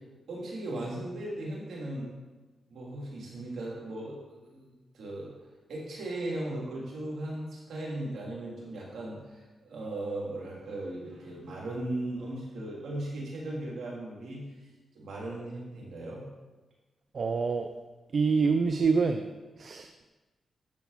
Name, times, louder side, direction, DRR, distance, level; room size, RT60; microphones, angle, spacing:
voice 1, 0.3-2.1 2.7-5.3 5.7-14.4 14.9-16.3, right 1 dB, 75° right, -4 dB, 3.2 m, -37 dB
voice 2, 17.1-17.7 18.1-19.2 19.6-20.0, right 4 dB, 60° right, 6 dB, 0.6 m, -26 dB
10.5 x 6.7 x 4.2 m, 1.2 s
cardioid pair, 55°, 0 cm